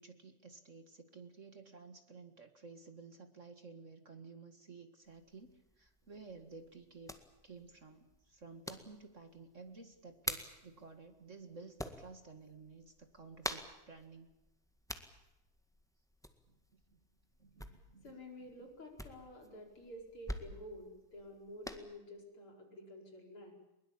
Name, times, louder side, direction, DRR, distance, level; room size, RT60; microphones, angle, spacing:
voice 1, 0.0-14.3 16.5-17.0 17.4-18.5, right 4 dB, 30° right, 8 dB, 1.6 m, -54 dB
sound 1, 5.0-21.8, equal, ahead, 0.8 m, -48 dB
voice 2, 17.7-23.5, equal, 45° left, 2 dB, 5.6 m, -51 dB
22.5 x 21.5 x 8.7 m, 0.98 s
omnidirectional pair, 3.5 m